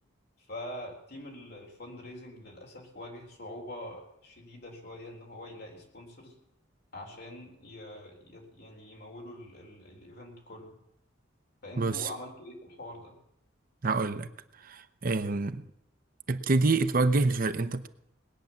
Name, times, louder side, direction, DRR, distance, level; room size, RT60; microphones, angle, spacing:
voice 1, 0.4-6.4 6.9-10.8 11.6-13.2, left 1 dB, 55° left, 4.1 m, -44 dB
voice 2, 11.8-12.1 13.8-14.3 14.5-15.6 16.3-17.9, right 3 dB, 50° right, 0.7 m, -27 dB
19.5 x 9.3 x 7.2 m
head